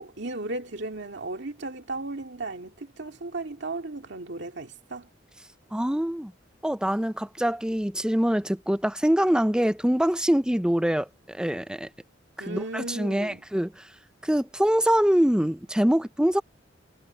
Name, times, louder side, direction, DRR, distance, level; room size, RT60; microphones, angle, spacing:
voice 1, 0.0-5.1 12.4-13.4, right 2 dB, 65° right, 2.4 m, -35 dB
voice 2, 5.7-6.3 6.6-11.9 12.4-13.9 14.2-16.4, equal, 5° right, 0.6 m, -24 dB
head